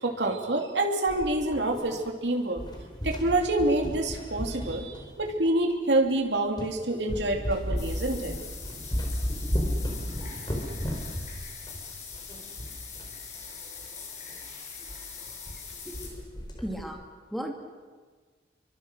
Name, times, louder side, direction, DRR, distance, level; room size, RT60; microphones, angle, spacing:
voice 1, 0.0-2.6 3.0-8.3, right 2 dB, 90° right, 2 dB, 3.0 m, -27 dB
sound 1, 1.1-2.2 2.5-5.5 6.1-6.2 6.6-6.8 7.1-13.2 13.4-13.5 13.8-13.9 14.3-14.5 14.9-15.0 15.3-15.6 15.9-16.9, equal, 25° left, 4.2 m, -34 dB
sound 2, 7.8-16.1, left 5 dB, 40° left, 5.9 m, -42 dB
voice 2, 15.5-16.1 16.6-17.0 17.3-17.5, equal, ahead, 2 dB, 2.6 m, -37 dB
28.0 x 24.5 x 6.3 m, 1.5 s
head